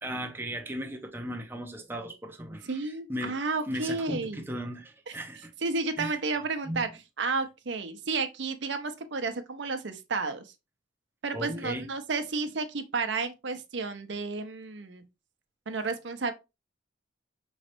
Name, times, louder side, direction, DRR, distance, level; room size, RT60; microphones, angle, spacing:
voice 1, 0.0-3.4 3.7-5.5 6.0-6.2 6.7-6.8 11.3-11.9, equal, 10° right, 0.5 m, -36 dB
voice 2, 2.7-4.4 5.6-6.9 7.2-10.5 11.2-15.0 15.7-16.3, right 4 dB, 65° right, 0.7 m, -32 dB
5.1 x 3.1 x 2.9 m
head